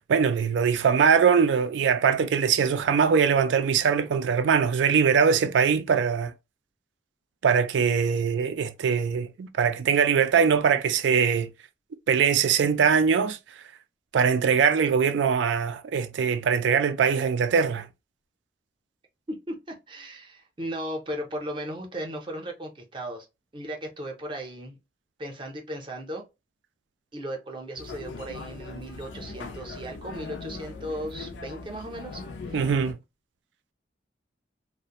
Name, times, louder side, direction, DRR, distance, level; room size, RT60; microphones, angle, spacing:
voice 1, 0.1-6.3 7.4-11.5 12.1-13.4 14.1-17.9 32.5-33.0, right 6 dB, 90° right, 0.3 m, -22 dB
voice 2, 19.3-23.3 23.5-24.8 25.2-26.2 27.1-32.6, right 1 dB, 30° right, 0.6 m, -36 dB
sound 1, 27.8-32.9, left 4 dB, 85° left, 0.5 m, -40 dB
2.4 x 2.1 x 2.8 m
head